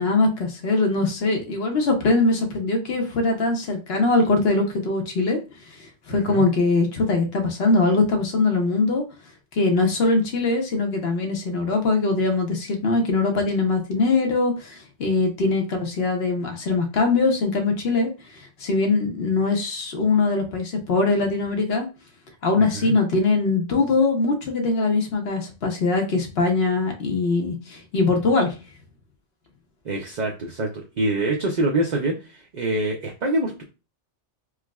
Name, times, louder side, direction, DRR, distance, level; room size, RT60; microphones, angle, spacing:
voice 1, 0.0-5.4 6.1-9.0 9.5-18.1 18.6-21.9 22.4-28.6, left 3 dB, 65° left, 3 dB, 0.9 m, -22 dB
voice 2, 6.1-6.4 22.6-22.9 29.8-33.6, right 2 dB, 50° right, 0 dB, 0.5 m, -25 dB
4.6 x 2.0 x 2.3 m, 0.30 s
omnidirectional pair, 1.2 m